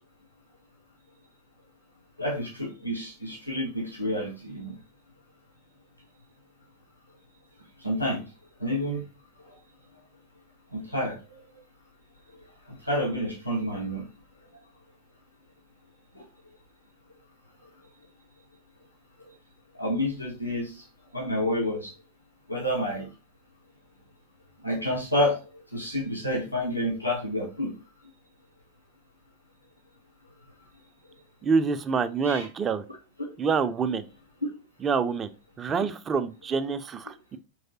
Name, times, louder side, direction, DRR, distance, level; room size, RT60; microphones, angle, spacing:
voice 1, 2.2-4.7 7.8-8.2 8.6-9.0 10.7-11.2 12.8-14.0 16.2-16.3 19.8-20.8 21.1-21.9 22.5-23.1 24.6-25.4 25.7-27.7 32.2-32.5, equal, 90° left, -2 dB, 0.8 m, -29 dB
voice 2, 31.4-32.8 33.4-34.0 34.8-35.3 35.6-37.4, right 5 dB, 25° right, 10 dB, 0.4 m, -26 dB
4.7 x 3.2 x 2.7 m, 0.32 s
figure-of-eight pair, 90°, 0 cm